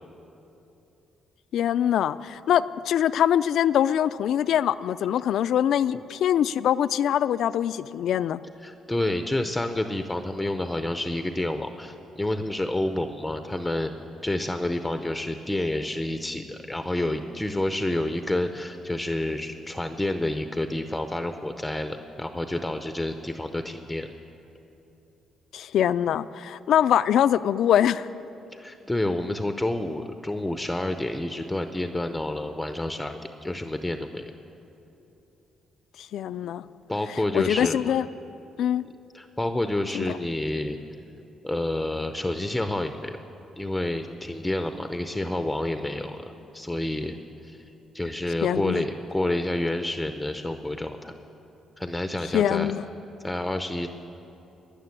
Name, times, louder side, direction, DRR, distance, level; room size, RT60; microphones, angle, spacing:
voice 1, 1.5-8.4 25.5-28.1 36.0-36.6 37.1-38.0 38.6-38.8 39.9-40.2 48.4-48.8 52.3-52.9, left 10 dB, 75° left, 15 dB, 0.4 m, -23 dB
voice 2, 8.6-13.9 14.2-24.1 28.5-34.3 36.9-37.8 39.1-40.8 41.4-43.2 43.6-47.6 47.9-51.1 51.8-52.7 53.2-53.9, left 1 dB, 10° left, 7 dB, 0.6 m, -29 dB
19.0 x 6.8 x 9.7 m, 3.0 s
cardioid pair, 90°, 0 cm